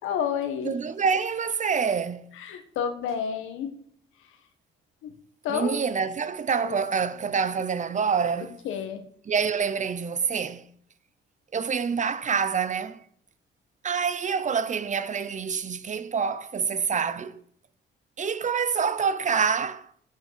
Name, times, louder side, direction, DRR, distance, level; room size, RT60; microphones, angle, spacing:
voice 1, 0.0-0.7 2.4-3.7 5.0-5.1 5.4-5.8 6.6-6.8 8.6-9.0, left 8 dB, 90° left, 1.6 m, -30 dB
voice 2, 0.6-2.3 5.5-8.6 9.3-10.7 11.5-13.0 13.8-17.4 18.2-19.9, right 6 dB, 40° right, 0.8 m, -27 dB
8.5 x 6.2 x 7.5 m
cardioid pair, 90°, 20 cm